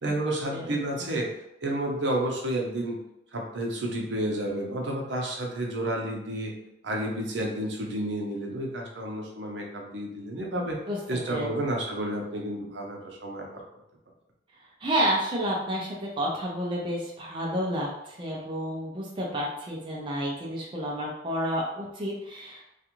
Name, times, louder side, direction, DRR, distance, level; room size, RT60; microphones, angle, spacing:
voice 1, 0.0-1.3 1.6-3.0 3.3-6.5 6.8-10.8 11.1-13.6, right 1 dB, 70° right, 0 dB, 0.6 m, -31 dB
voice 2, 14.8-22.6, equal, 25° right, -3 dB, 0.4 m, -30 dB
2.4 x 2.4 x 2.9 m, 0.86 s
head